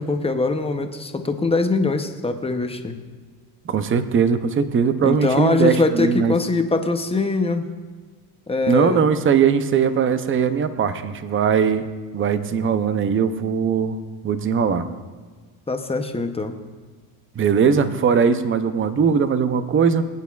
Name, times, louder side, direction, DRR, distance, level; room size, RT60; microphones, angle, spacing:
voice 1, 0.0-3.0 5.0-7.7 8.5-9.1 15.7-16.5, left 3 dB, 10° left, 6 dB, 0.7 m, -22 dB
voice 2, 3.7-6.3 8.7-11.9 12.1-14.0 14.2-14.9 17.4-20.0, right 6 dB, 25° right, 11 dB, 0.6 m, -20 dB
21.0 x 9.3 x 2.4 m, 1.4 s
cardioid pair, 125°, 50 cm